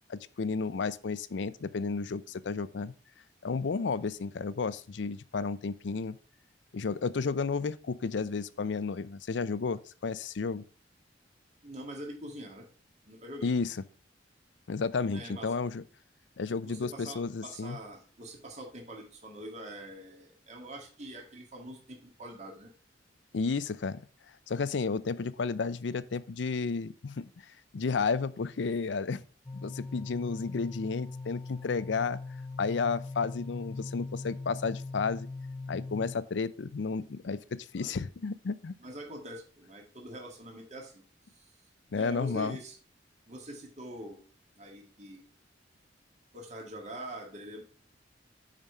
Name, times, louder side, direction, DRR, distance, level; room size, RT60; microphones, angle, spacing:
voice 1, 0.1-2.9 3.4-6.2 6.7-10.6 13.4-13.8 14.7-15.8 16.4-17.8 23.3-24.0 24.5-27.3 27.7-29.2 29.5-32.2 32.6-35.3 35.7-38.8 41.9-42.6, left 4 dB, 75° left, 0.5 m, -32 dB
voice 2, 11.6-12.7 13.1-13.5 15.1-15.5 16.6-22.7 37.7-37.9 38.8-41.0 41.4-41.5 41.9-42.8 43.3-44.2 44.6-45.2 46.3-47.6, right 1 dB, 40° right, 2.0 m, -44 dB
sound 1, 29.5-36.2, left 3 dB, 20° left, 0.4 m, -41 dB
7.2 x 5.1 x 5.5 m
head